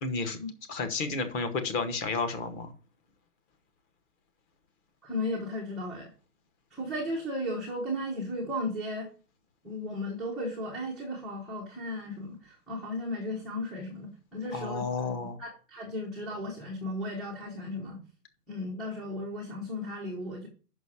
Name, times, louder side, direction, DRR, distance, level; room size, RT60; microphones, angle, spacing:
voice 1, 0.0-0.4 0.7-2.7 14.5-15.4, left 4 dB, 20° left, 8 dB, 1.0 m, -31 dB
voice 2, 5.0-6.1 6.7-9.1 9.6-15.1 15.4-18.0 18.5-20.5, left 1 dB, ahead, -7 dB, 0.5 m, -35 dB
6.2 x 5.8 x 7.1 m, 0.37 s
hypercardioid pair, 140°, 47 cm